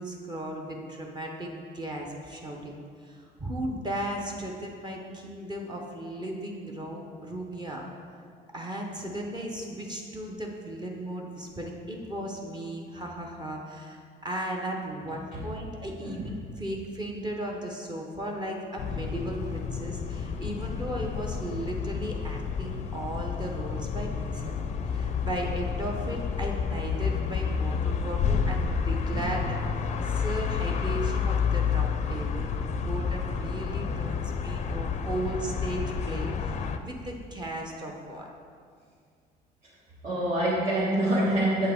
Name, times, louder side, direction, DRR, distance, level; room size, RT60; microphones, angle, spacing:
voice 1, 0.0-7.8 8.5-24.6 24.8-32.5 32.8-38.3, right 1 dB, 25° right, 0 dB, 0.9 m, -36 dB
sound 1, 18.8-36.8, left 6 dB, 40° left, 0.4 m, -30 dB
voice 2, 40.0-41.7, right 1 dB, 55° right, -9 dB, 1.6 m, -26 dB
7.5 x 5.6 x 3.6 m, 2.1 s
cardioid pair, 110°, 17 cm